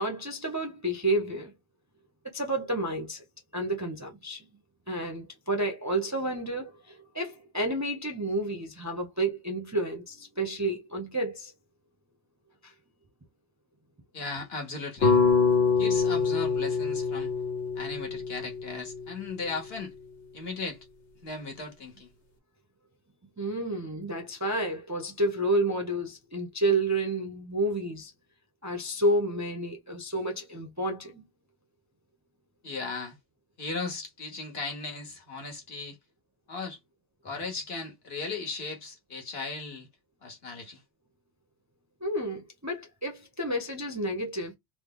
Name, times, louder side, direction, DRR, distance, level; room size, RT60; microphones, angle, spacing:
voice 1, 0.0-1.5 2.3-3.2 3.5-4.5 4.9-11.5 12.6-12.7 23.4-28.1 28.6-31.2 42.0-44.5, right 1 dB, 20° right, 0.5 m, -30 dB
voice 2, 14.1-15.2 15.8-17.3 17.7-19.9 20.3-20.8 21.2-22.1 32.6-33.2 33.6-36.0 36.5-36.8 37.2-39.9 40.2-40.8, left 3 dB, 65° left, 1.3 m, -37 dB
sound 1, 15.0-19.3, left 5 dB, 85° left, 1.4 m, -25 dB
3.2 x 2.1 x 3.7 m
omnidirectional pair, 1.2 m